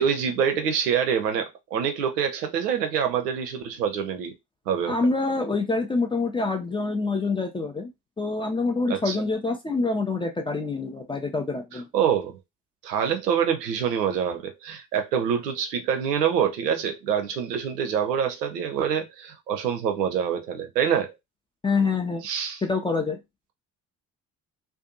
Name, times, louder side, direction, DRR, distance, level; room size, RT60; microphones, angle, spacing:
voice 1, 0.0-4.3 4.7-5.0 8.9-9.2 11.7-12.3 12.8-21.1 22.2-22.6, right 8 dB, 80° right, 0.5 m, -26 dB
voice 2, 4.8-7.9 8.2-11.9 21.6-22.3 22.6-23.2, left 3 dB, 10° left, 0.3 m, -26 dB
2.5 x 2.2 x 2.6 m
figure-of-eight pair, 40°, 48 cm